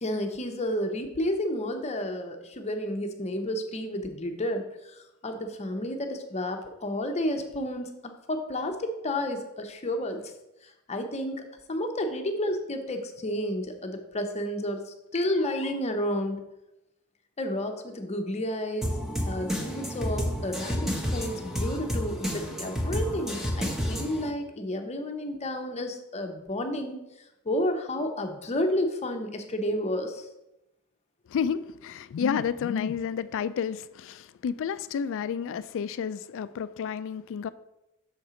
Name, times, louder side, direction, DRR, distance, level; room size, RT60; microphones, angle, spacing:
voice 1, 0.0-10.3 10.6-16.4 17.4-19.0 19.3-27.0 27.4-30.3, left 1 dB, 30° left, 0.7 m, -31 dB
sound 1, 18.8-24.3, equal, ahead, 0.8 m, -30 dB
voice 2, 31.3-37.5, left 7 dB, 60° left, 0.3 m, -30 dB
6.5 x 4.3 x 4.9 m
head